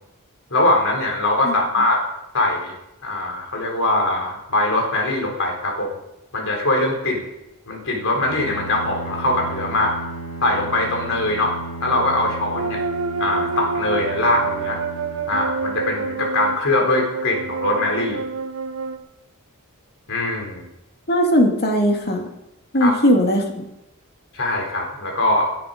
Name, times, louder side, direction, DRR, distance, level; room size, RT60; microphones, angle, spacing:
voice 1, 0.5-2.0 2.3-2.7 3.0-5.9 6.3-7.3 7.7-9.9 10.4-11.5 11.8-12.8 13.2-14.8 15.3-18.2 20.1-20.7 22.8-22.9 24.3-25.5, left 2 dB, 65° left, 2 dB, 4.2 m, -22 dB
Bowed string instrument, 8.1-16.1, right 3 dB, 85° left, 5.5 m, -35 dB
sound 1, 12.5-19.0, right 4 dB, 70° right, 1.4 m, -28 dB
voice 2, 21.1-22.3 22.7-23.6, equal, 45° left, 3 dB, 2.4 m, -18 dB
18.0 x 10.5 x 5.3 m, 0.90 s
head